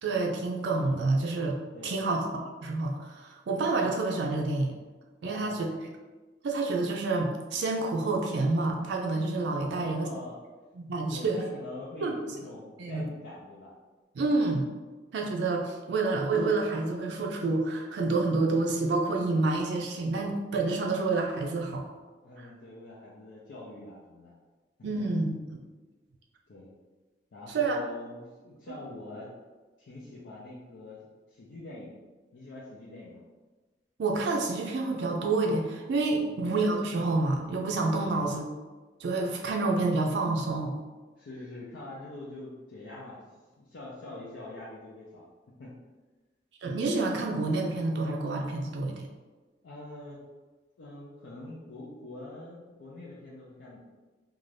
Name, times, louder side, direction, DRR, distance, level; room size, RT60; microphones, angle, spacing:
voice 1, 0.0-2.2 2.6-4.7 5.2-5.7 6.4-10.1 10.8-11.4 12.0-12.2 12.8-13.1 14.2-14.7 15.1-21.8 24.8-25.4 27.5-27.8 34.0-38.4 39.0-40.8 46.6-49.1, right 3 dB, 70° right, 1 dB, 0.4 m, -28 dB
voice 2, 1.7-2.2 5.2-5.8 9.7-10.4 11.1-13.7 22.2-24.3 24.8-25.3 26.5-26.7 27.3-29.3 29.8-32.0 32.3-33.2 38.0-38.3 41.2-43.2 43.6-45.7 49.6-50.2 50.8-53.8, left 2 dB, 85° left, -6 dB, 0.5 m, -44 dB
2.5 x 2.3 x 3.2 m, 1.3 s
head